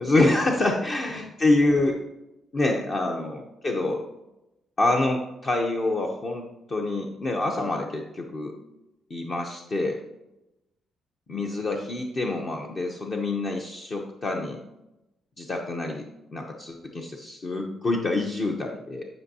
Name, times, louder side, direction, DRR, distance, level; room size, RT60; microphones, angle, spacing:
voice 1, 0.0-2.0 2.5-4.0 4.8-8.5 9.1-10.0 11.3-14.6 15.4-19.1, left 2 dB, 40° left, 1 dB, 0.8 m, -26 dB
10.5 x 5.4 x 2.8 m, 0.92 s
cardioid pair, 90°, 0 cm